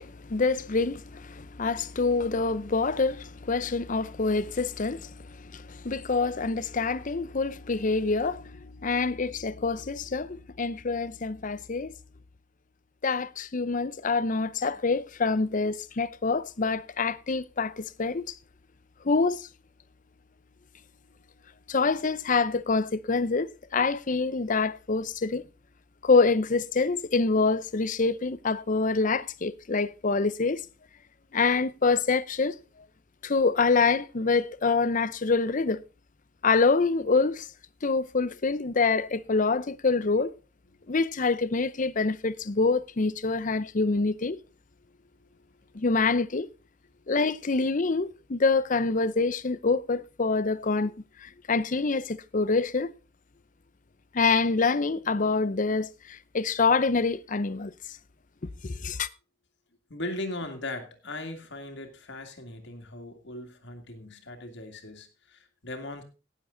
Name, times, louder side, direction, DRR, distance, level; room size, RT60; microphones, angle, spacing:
voice 1, 0.0-11.9 13.0-18.3 19.0-19.5 21.7-25.4 26.0-30.6 31.3-32.6 33.2-35.8 36.4-37.5 37.8-40.3 40.9-44.4 45.7-46.5 47.1-50.9 51.2-52.9 54.1-57.7 58.6-59.1, left 4 dB, 40° left, 0.6 m, -26 dB
voice 2, 59.9-66.0, left 2 dB, 60° left, 2.3 m, -38 dB
18.0 x 7.5 x 3.8 m
head